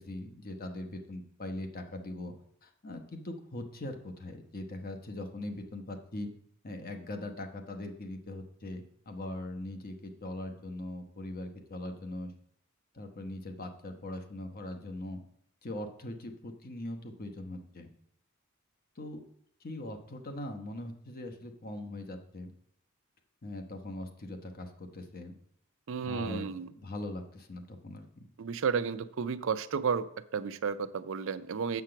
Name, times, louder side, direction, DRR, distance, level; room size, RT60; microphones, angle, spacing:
voice 1, 0.0-2.4 2.6-6.3 6.6-12.3 12.9-15.2 15.6-17.9 19.0-19.2 19.6-22.5 23.4-25.4 26.0-28.3, left 1 dB, 45° left, 5 dB, 1.0 m, -41 dB
voice 2, 25.9-26.7 28.4-30.1 30.3-31.8, right 6 dB, 65° right, 12 dB, 0.5 m, -32 dB
7.6 x 5.9 x 5.8 m, 0.69 s
head